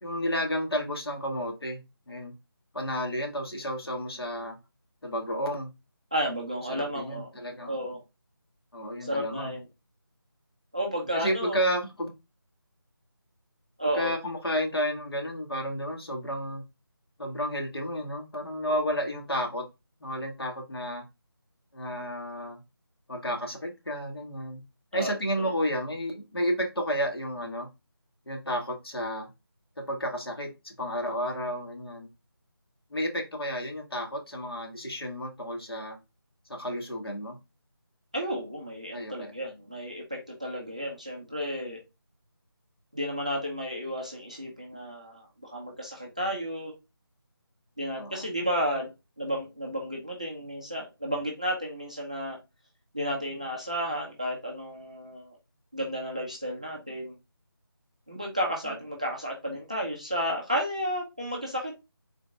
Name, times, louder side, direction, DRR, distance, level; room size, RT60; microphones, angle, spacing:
voice 1, 0.0-2.3 2.7-4.6 5.0-5.7 6.7-7.8 8.7-9.5 11.1-12.1 13.9-16.6 17.2-19.7 20.0-21.0 21.7-22.6 23.1-24.6 24.9-27.7 28.2-29.3 29.8-32.1 32.9-36.0 36.5-37.4 38.9-39.3 48.0-48.2 58.6-58.7, equal, 75° left, 2 dB, 1.8 m, -32 dB
voice 2, 6.1-7.3 7.7-8.0 9.0-9.7 10.7-11.6 13.8-14.1 24.9-25.5 38.1-41.8 42.9-46.7 47.8-48.9 49.2-52.4 52.9-55.4 55.7-57.2 58.1-61.7, equal, 15° right, 0 dB, 0.5 m, -32 dB
3.8 x 2.7 x 3.5 m, 0.25 s
figure-of-eight pair, 180°, 13 cm